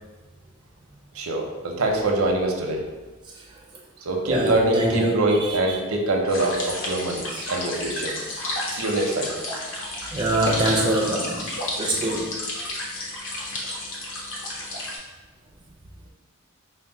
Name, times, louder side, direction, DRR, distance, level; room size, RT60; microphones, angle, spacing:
voice 1, 1.1-2.8 4.0-8.2 8.7-9.4 13.6-13.7, right 2 dB, 80° right, 1 dB, 0.7 m, -24 dB
voice 2, 4.3-5.8 7.3-7.5 10.1-11.5 11.8-12.4, right 1 dB, 20° right, -2 dB, 0.4 m, -24 dB
sound 1, 6.3-15.0, left 1 dB, 60° left, 0.9 m, -32 dB
4.3 x 2.1 x 4.0 m, 1.2 s
head